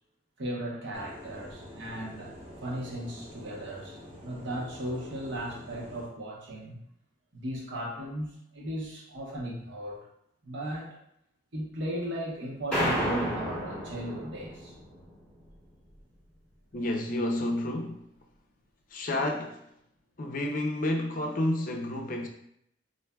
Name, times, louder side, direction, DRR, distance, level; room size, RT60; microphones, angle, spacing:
voice 1, 0.4-6.8 7.3-10.0 10.4-11.0 11.5-14.7, right 1 dB, 70° right, 0.9 m, -36 dB
sound 1, 0.9-6.1, equal, 30° right, 0.8 m, -47 dB
sound 2, 12.7-15.1, equal, 5° left, 0.9 m, -31 dB
voice 2, 16.7-18.0 18.9-19.6 20.2-22.3, left 1 dB, 45° left, 0.5 m, -30 dB
4.5 x 2.6 x 2.2 m
head